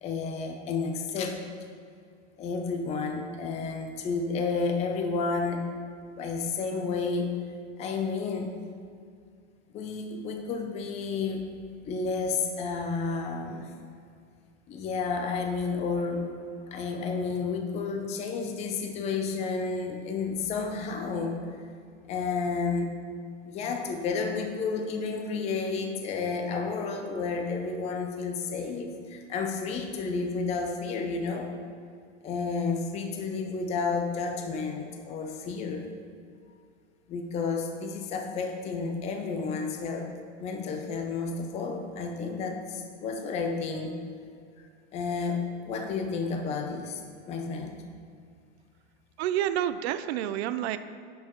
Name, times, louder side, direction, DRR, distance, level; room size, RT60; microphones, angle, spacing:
voice 1, 0.0-1.4 2.4-5.7 6.2-7.4 7.8-8.5 9.7-11.5 11.8-13.7 14.7-16.3 16.7-21.4 22.1-23.0 23.4-31.5 32.2-35.9 37.1-40.1 40.4-44.0 44.9-47.8, left 4 dB, 20° left, 4 dB, 0.5 m, -31 dB
voice 2, 49.2-50.8, right 11 dB, 65° right, 12 dB, 0.5 m, -28 dB
10.5 x 4.6 x 3.0 m, 2.3 s
hypercardioid pair, 130°, 35 cm